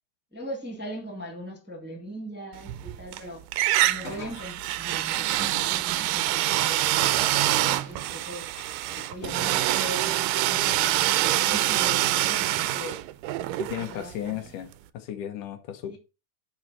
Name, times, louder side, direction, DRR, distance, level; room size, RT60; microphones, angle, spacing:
voice 1, 0.3-3.4 3.8-8.5 8.9-13.0 13.7-14.5 15.9-16.0, equal, 5° right, 1.6 m, -40 dB
sound 1, 2.6-3.2 3.5-14.4, right 15 dB, 90° right, 2.3 m, -25 dB
sound 2, 3.8-11.0, left 2 dB, 50° left, 3.7 m, -47 dB
voice 2, 13.6-16.0, left 10 dB, 75° left, 2.5 m, -35 dB
11.0 x 4.3 x 5.6 m
omnidirectional pair, 3.8 m